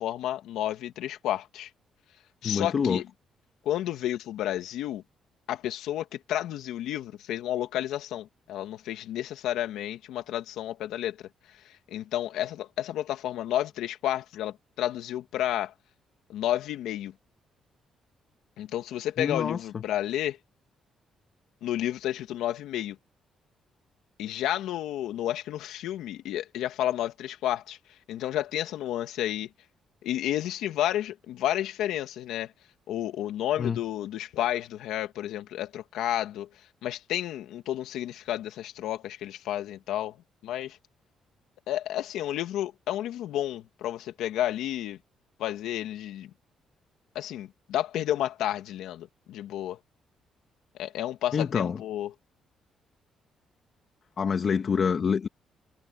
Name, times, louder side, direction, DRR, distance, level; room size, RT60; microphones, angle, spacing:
voice 1, 0.0-1.7 2.4-3.1 3.6-5.0 5.5-11.2 11.6-15.7 16.3-17.1 18.6-20.4 21.6-23.0 24.2-27.8 28.1-29.5 30.0-32.5 32.9-36.5 36.8-40.2 40.4-40.8 41.7-45.0 45.4-46.3 47.1-49.8 50.7-52.1, left 12 dB, 85° left, 2.3 m, -31 dB
voice 2, 2.4-3.0 19.2-19.8 33.6-33.8 51.3-51.8 54.2-55.3, left 6 dB, 50° left, 1.8 m, -26 dB
cardioid pair, 90°, 0 cm